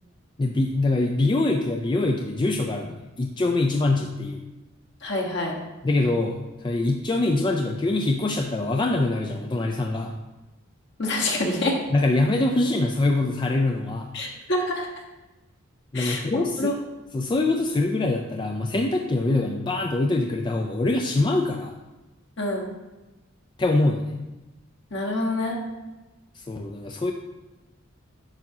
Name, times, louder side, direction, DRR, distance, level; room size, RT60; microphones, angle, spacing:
voice 1, 0.4-4.4 5.8-10.1 11.9-14.1 15.9-16.8 17.1-21.7 23.6-24.2 26.4-27.1, left 2 dB, 25° left, 2 dB, 0.3 m, -24 dB
voice 2, 5.0-5.6 11.0-11.8 14.1-14.9 15.9-16.7 22.4-22.7 24.9-25.6, left 1 dB, 60° left, -1 dB, 1.3 m, -26 dB
8.9 x 5.9 x 2.8 m, 1.1 s
head